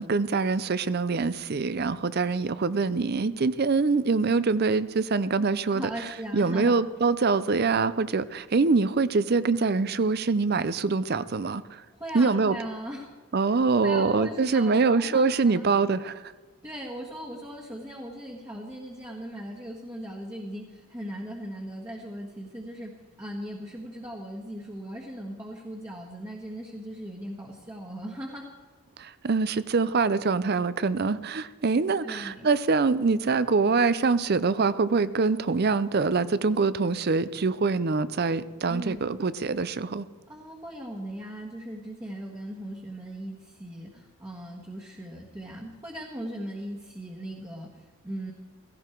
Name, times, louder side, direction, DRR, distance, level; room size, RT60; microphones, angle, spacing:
voice 1, 0.0-5.9 6.3-11.8 12.1-12.6 13.3-16.3 29.0-40.1, right 4 dB, 45° right, 16 dB, 0.5 m, -24 dB
voice 2, 5.7-6.7 11.9-13.1 13.5-13.6 13.8-15.6 16.6-22.9 23.2-28.5 32.0-32.5 38.7-39.0 40.3-48.3, equal, 15° right, -2 dB, 1.5 m, -38 dB
17.0 x 16.0 x 4.5 m, 1.4 s
head